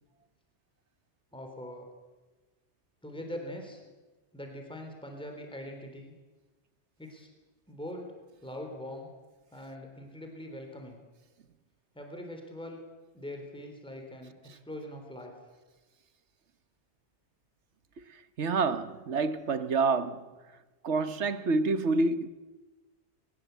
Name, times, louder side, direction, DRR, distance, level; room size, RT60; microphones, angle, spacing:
voice 1, 1.3-1.9 3.0-3.8 4.3-6.1 7.0-7.3 7.7-8.1 8.4-9.1 9.5-11.0 11.9-12.8 13.1-15.3, left 1 dB, 5° left, 3.5 m, -42 dB
voice 2, 18.4-20.2 20.8-22.3, right 3 dB, 80° right, 1.4 m, -27 dB
22.0 x 20.5 x 8.2 m
omnidirectional pair, 1.2 m